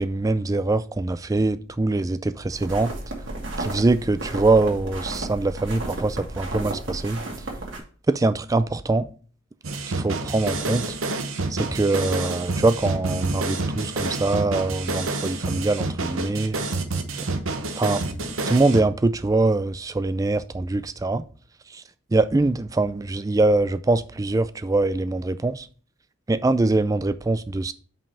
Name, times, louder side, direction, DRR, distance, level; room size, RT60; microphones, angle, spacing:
voice 1, 0.0-2.9 3.6-7.2 8.1-9.1 10.0-10.9 11.6-16.6 17.8-18.0 18.5-21.2 22.1-25.7 26.3-27.7, right 2 dB, 15° right, 0.3 m, -23 dB
sound 1, 2.5-7.8, right 2 dB, 70° right, 2.3 m, -33 dB
sound 2, 9.6-18.8, right 2 dB, 90° right, 1.0 m, -28 dB
5.5 x 5.3 x 5.5 m
head